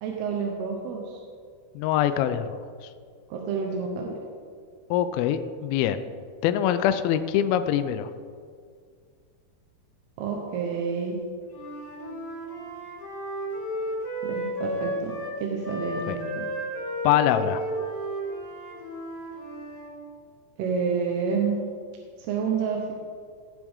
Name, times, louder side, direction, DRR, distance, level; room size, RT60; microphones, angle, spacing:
voice 1, 0.0-1.2 3.3-4.1 10.2-11.2 14.2-15.1 15.4-16.5 20.6-21.6 22.2-22.9, right 5 dB, 80° right, 0 dB, 2.9 m, -29 dB
voice 2, 1.8-2.5 4.9-6.0 6.4-8.1 16.1-16.2 17.0-17.6, left 10 dB, 85° left, 9 dB, 2.2 m, -23 dB
Wind instrument woodwind instrument, 11.5-15.4 15.6-19.9, equal, 30° left, 1.9 m, -33 dB
15.0 x 8.4 x 3.6 m, 2.1 s
omnidirectional pair, 4.7 m